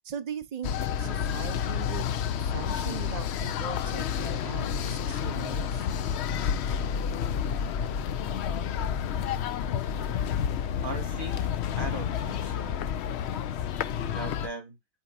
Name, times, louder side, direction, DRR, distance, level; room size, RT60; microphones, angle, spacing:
voice 1, 0.0-0.7 1.0-2.1 2.4-5.9, right 7 dB, 75° right, 0.3 m, -39 dB
sound 1, 0.6-14.5, left 8 dB, 65° left, 0.8 m, -30 dB
voice 2, 10.8-12.8 14.1-14.8, right 2 dB, 20° right, 2.1 m, -39 dB
8.3 x 4.2 x 2.8 m
omnidirectional pair, 1.4 m